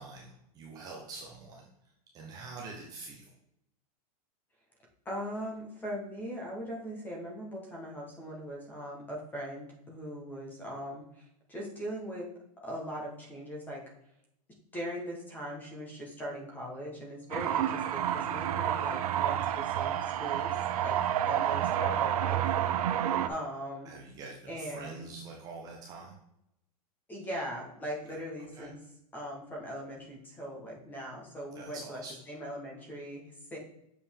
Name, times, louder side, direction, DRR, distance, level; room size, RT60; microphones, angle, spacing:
voice 1, 0.0-1.7 2.1-3.3 23.8-26.1 28.1-28.2 28.5-28.7 31.5-32.1, right 3 dB, 20° right, -1 dB, 0.8 m, -45 dB
voice 2, 5.0-12.3 12.6-13.8 14.7-20.5 20.8-21.0 21.3-22.5 23.3-23.9 24.5-25.1 27.1-28.8 29.1-32.0 32.3-33.6, equal, 10° left, -2 dB, 1.2 m, -40 dB
sound 1, 17.3-23.3, right 11 dB, 75° right, 0.6 m, -29 dB
6.9 x 5.1 x 3.6 m, 0.80 s
supercardioid pair, 170°, 19 cm